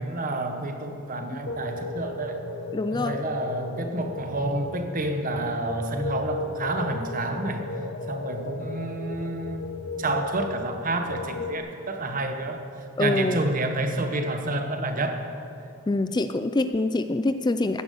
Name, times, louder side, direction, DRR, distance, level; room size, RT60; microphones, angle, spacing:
voice 1, 0.0-2.4 2.9-7.7 8.1-9.6 10.0-12.6 13.0-15.3, right 2 dB, 40° right, 5 dB, 1.3 m, -29 dB
sound 1, 1.5-11.6, left 3 dB, 55° left, 1.1 m, -35 dB
voice 2, 2.7-3.2 13.0-13.4 15.9-17.8, left 2 dB, 20° left, 9 dB, 0.4 m, -25 dB
16.0 x 10.5 x 6.8 m, 2.6 s
head